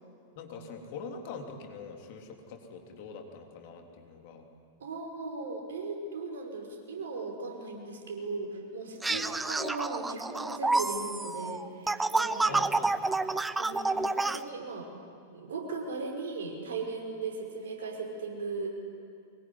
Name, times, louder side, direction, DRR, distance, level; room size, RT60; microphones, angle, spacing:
voice 1, 0.4-4.4 9.1-9.3 12.5-13.2, left 5 dB, 45° left, 3 dB, 3.4 m, -44 dB
voice 2, 4.8-12.7 13.6-14.9 15.3-18.7, right 3 dB, 60° right, 2 dB, 5.3 m, -37 dB
sound 1, 9.0-14.4, right 3 dB, 10° right, 0.8 m, -29 dB
24.0 x 21.5 x 9.9 m, 2.3 s
figure-of-eight pair, 95°, 0 cm